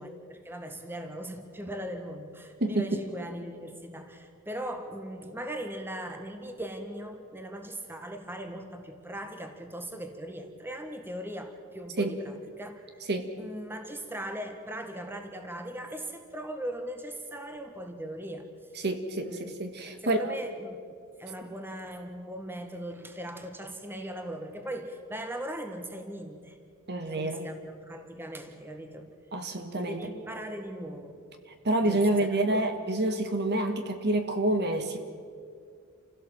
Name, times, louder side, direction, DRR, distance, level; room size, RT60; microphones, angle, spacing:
voice 1, 0.0-13.0 13.4-18.5 19.2-19.5 20.0-20.8 21.2-26.6 27.0-29.1 29.8-31.2 31.8-32.6, right 1 dB, 10° right, 5 dB, 1.7 m, -39 dB
voice 2, 18.8-20.3 26.9-27.5 29.3-30.0 31.6-35.0, right 1 dB, 50° right, 6 dB, 1.6 m, -28 dB
28.0 x 16.5 x 7.6 m, 2.3 s
head